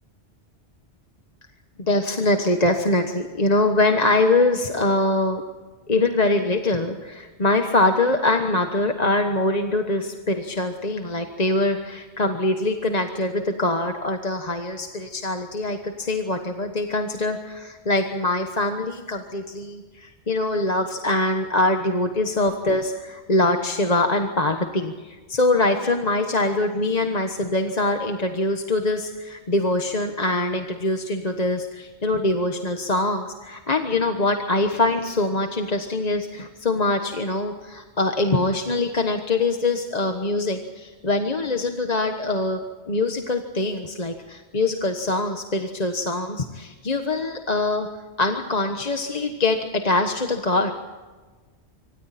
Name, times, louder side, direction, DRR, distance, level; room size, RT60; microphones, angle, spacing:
voice 1, 1.8-5.4 5.9-42.6 42.9-47.9 48.2-50.7, left 2 dB, 35° left, 5 dB, 1.4 m, -23 dB
26.0 x 25.5 x 4.3 m, 1.4 s
omnidirectional pair, 1.1 m